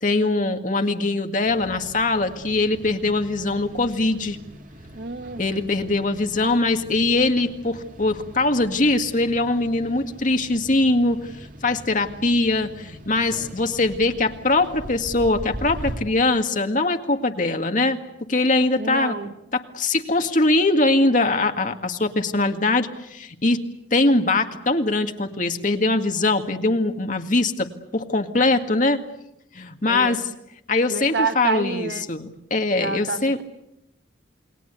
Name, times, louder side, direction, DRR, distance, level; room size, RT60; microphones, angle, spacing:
voice 1, 0.0-4.4 5.4-11.3 11.6-18.0 18.3-19.1 19.5-23.6 23.9-29.0 29.5-30.2 30.7-33.4, left 2 dB, 45° left, 2.0 m, -22 dB
sound 1, 1.5-16.0, equal, 45° right, 2.2 m, -41 dB
voice 2, 4.9-5.6 18.8-19.3 29.9-30.2 30.9-32.1 32.8-33.4, right 4 dB, 65° right, 1.3 m, -28 dB
29.0 x 21.5 x 8.2 m
head